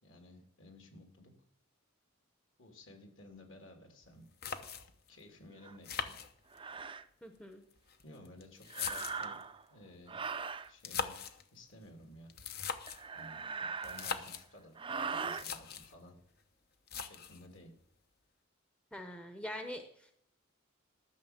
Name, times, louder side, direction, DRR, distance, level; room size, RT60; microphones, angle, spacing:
voice 1, 0.0-1.3 2.6-4.3 5.1-6.1 8.0-9.4 9.7-10.2 10.7-12.3 13.1-13.4 13.8-16.2 17.0-17.7, left 1 dB, 65° left, 3 dB, 2.9 m, -55 dB
sound 1, 4.0-4.1 4.4-5.1 5.8-6.8 7.7-9.4 10.7-11.4 12.3-13.1 13.8-14.5 15.0-15.1 15.3-15.9 16.9-17.5, left 6 dB, 50° left, 0.8 m, -40 dB
sound 2, 5.6-5.8 6.5-7.0 8.7-9.6 10.1-10.7 12.9-14.3 14.8-15.5, right 5 dB, 25° right, 0.5 m, -40 dB
voice 2, 7.2-7.6 18.9-20.1, left 1 dB, 5° left, 6 dB, 0.8 m, -44 dB
12.5 x 6.6 x 7.3 m, 0.68 s
head